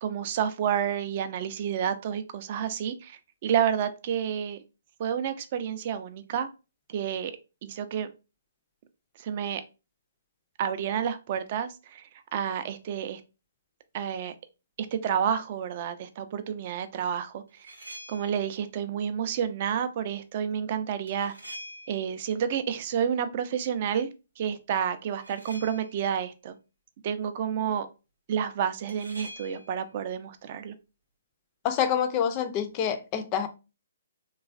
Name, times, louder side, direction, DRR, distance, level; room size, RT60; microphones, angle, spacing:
voice 1, 0.0-4.6 5.0-6.5 6.9-7.3 7.6-8.1 9.2-9.6 10.6-13.2 13.9-14.3 14.8-17.7 18.1-21.3 21.9-24.1 24.4-26.5 27.0-27.9 28.3-30.7, right 8 dB, 40° right, 0.4 m, -30 dB
sound 1, 17.5-18.5 21.1-22.3 25.1-26.1 28.9-29.8, right 1 dB, 90° right, 0.7 m, -45 dB
voice 2, 31.6-33.5, left 8 dB, 30° left, 0.4 m, -27 dB
3.0 x 2.3 x 2.4 m
figure-of-eight pair, 130°, 0 cm